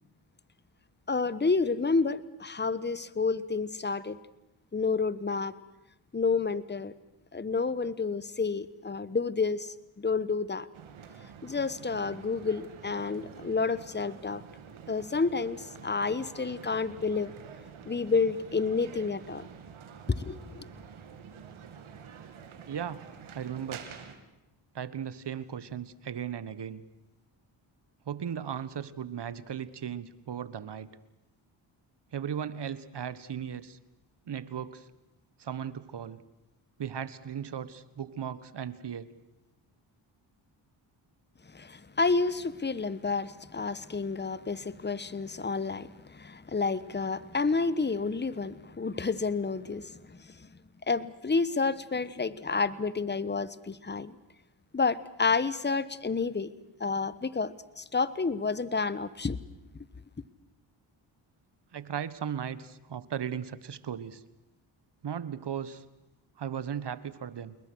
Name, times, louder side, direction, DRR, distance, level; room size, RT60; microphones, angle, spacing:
voice 1, 1.1-4.2 4.7-5.5 6.1-6.9 7.3-10.7 11.4-14.4 14.9-17.3 17.9-19.4 20.1-20.7 41.5-49.9 50.9-54.1 54.7-56.5 56.8-59.4, left 4 dB, 20° left, 1.3 m, -30 dB
sound 1, 10.7-24.2, right 7 dB, 75° right, 3.0 m, -48 dB
voice 2, 22.7-23.0 23.3-23.8 24.7-26.8 28.1-30.9 32.1-33.8 34.3-34.8 35.4-36.2 36.8-39.1 61.7-64.2 65.0-65.8 66.4-67.6, right 8 dB, 55° right, 1.6 m, -36 dB
29.0 x 21.0 x 6.4 m
supercardioid pair, 55°, 49 cm